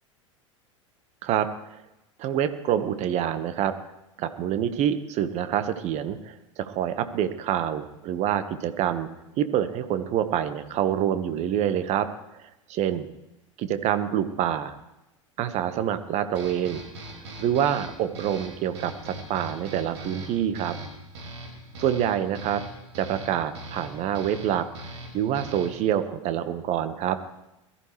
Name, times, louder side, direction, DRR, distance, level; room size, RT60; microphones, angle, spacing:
voice 1, 2.2-3.7 4.2-9.1 9.4-12.1 12.7-13.1 13.6-14.7 15.4-16.8 17.4-20.7 21.8-22.6 22.9-24.6 25.1-27.2, right 10 dB, 45° right, 10 dB, 1.4 m, -26 dB
sound 1, 16.3-25.9, right 1 dB, 65° right, 5.2 m, -41 dB
22.0 x 14.5 x 3.3 m, 0.92 s
figure-of-eight pair, 80°, 16 cm